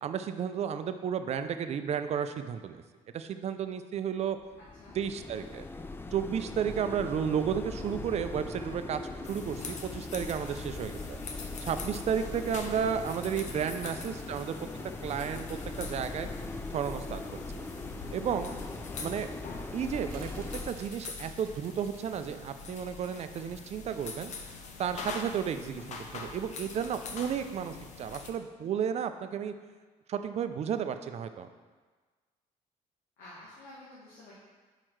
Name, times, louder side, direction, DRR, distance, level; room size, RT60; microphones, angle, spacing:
voice 1, 0.0-2.8 3.1-4.4 5.0-5.6 6.1-9.0 9.3-11.2 11.6-14.6 15.0-15.5 15.8-16.3 16.7-17.2 17.5-17.6 18.1-18.5 19.0-19.3 19.7-24.3 24.8-29.5 30.1-31.5, right 8 dB, 50° right, 9 dB, 0.4 m, -33 dB
sound 1, 4.4-20.7, left 3 dB, 15° left, 0.3 m, -40 dB
voice 2, 4.6-5.0 13.8-14.0 25.8-26.1 33.2-34.3, left 1 dB, 90° left, -8 dB, 1.4 m, -52 dB
sound 2, 7.8-23.5 23.9-24.0, right 2 dB, 80° right, 0.8 m, -54 dB
sound 3, 9.2-28.3, left 4 dB, 55° left, 0.7 m, -44 dB
4.9 x 4.5 x 4.5 m, 1.4 s
cardioid pair, 90°, 14 cm